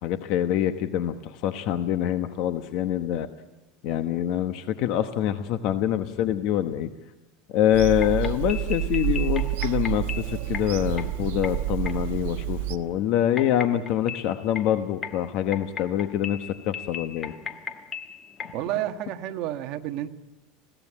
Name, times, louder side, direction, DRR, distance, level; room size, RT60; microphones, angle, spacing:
voice 1, 0.0-3.3 3.8-6.9 7.5-17.3, left 11 dB, 45° left, 9 dB, 1.0 m, -25 dB
Bird vocalization bird call bird song / Telephone, 7.7-12.8, right 16 dB, 65° right, 1.2 m, -29 dB
sound 1, 8.0-18.6, left 7 dB, 20° left, 1.2 m, -37 dB
voice 2, 18.5-20.2, right 13 dB, 45° right, 6 dB, 1.4 m, -30 dB
21.5 x 16.5 x 9.9 m, 1.1 s
supercardioid pair, 170°, 0 cm